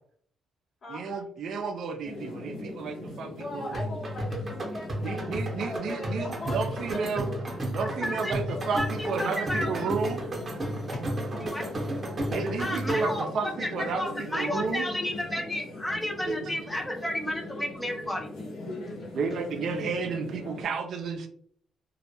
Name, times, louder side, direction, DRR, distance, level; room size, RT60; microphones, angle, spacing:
voice 1, 0.9-3.8 5.0-7.3 7.7-10.2 12.3-14.8 16.2-16.4 19.1-21.3, right 4 dB, 65° right, 5 dB, 0.3 m, -32 dB
sound 1, 2.0-20.6, left 2 dB, 85° left, 0.8 m, -41 dB
voice 2, 3.4-6.6 6.9-7.5 10.9-11.0, left 1 dB, 55° left, -6 dB, 0.9 m, -39 dB
sound 2, 3.7-13.3, right 1 dB, 30° right, 0.7 m, -33 dB
voice 3, 8.0-9.7 11.5-11.6 12.6-18.3, left 1 dB, 10° left, 3 dB, 0.6 m, -32 dB
2.2 x 2.0 x 2.8 m, 0.63 s
cardioid pair, 90°, 0 cm